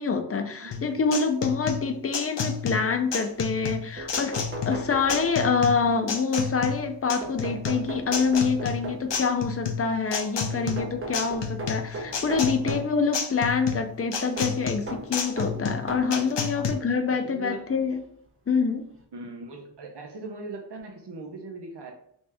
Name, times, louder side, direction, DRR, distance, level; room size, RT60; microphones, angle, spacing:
voice 1, 0.0-4.4 4.6-18.0 18.5-18.9, left 5 dB, 35° left, 6 dB, 0.5 m, -26 dB
sound 1, 0.7-16.7, left 6 dB, 85° left, 0.5 m, -31 dB
sound 2, 4.0-5.7 7.2-9.3 10.8-13.0 14.4-16.2 17.1-17.2 18.5-18.6 18.9-19.0, right 2 dB, 30° right, 0.6 m, -37 dB
voice 2, 10.5-10.8 12.6-12.8 16.5-16.7 17.1-17.7 19.1-21.9, right 3 dB, 70° right, 1 dB, 0.7 m, -40 dB
3.3 x 2.7 x 3.4 m, 0.66 s
wide cardioid pair, 65°, 42 cm